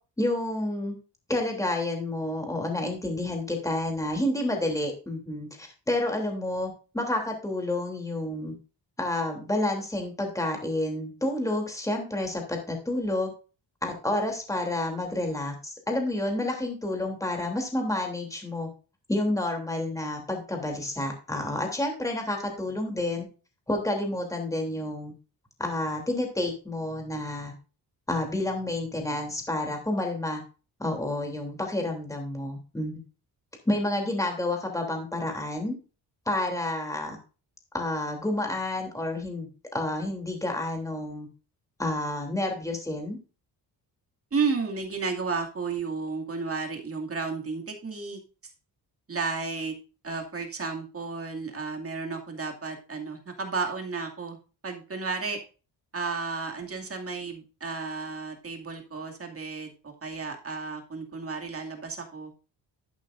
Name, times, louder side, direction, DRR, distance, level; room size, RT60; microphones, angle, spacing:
voice 1, 0.2-0.9 1.3-8.5 9.0-13.3 13.8-18.7 19.1-23.2 23.7-25.1 25.6-27.5 28.1-30.4 30.8-33.0 33.6-35.7 36.3-37.2 37.7-41.3 41.8-43.2, left 1 dB, 10° left, 2 dB, 3.1 m, -29 dB
voice 2, 44.3-48.2 49.1-49.8 50.0-54.4 54.6-55.4 55.9-62.3, right 4 dB, 35° right, 3 dB, 2.4 m, -32 dB
11.5 x 8.7 x 2.6 m, 0.34 s
cardioid pair, 95°, 42 cm